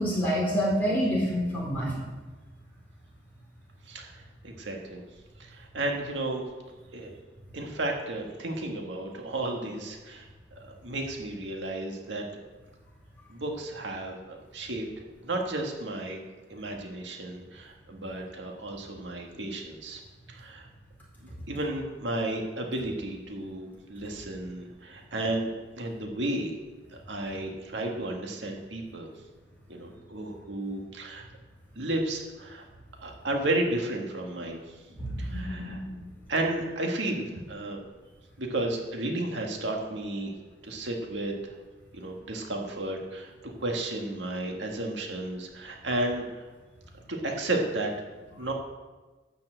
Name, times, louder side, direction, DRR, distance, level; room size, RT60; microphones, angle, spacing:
voice 1, 0.0-2.0 34.9-36.0, equal, 10° left, -6 dB, 4.5 m, -28 dB
voice 2, 3.9-5.0 5.4-6.4 6.9-7.1 7.5-10.3 10.6-12.3 13.3-14.9 15.2-16.2 16.5-20.0 20.3-20.7 21.2-26.5 27.1-29.1 29.7-31.2 31.7-32.6 33.0-34.6 35.2-35.8 36.3-37.8 38.4-40.3 40.6-41.6 41.9-46.5 47.1-47.9 48.4-48.5, right 2 dB, 85° right, 1 dB, 1.8 m, -33 dB
12.5 x 6.0 x 7.8 m, 1.3 s
head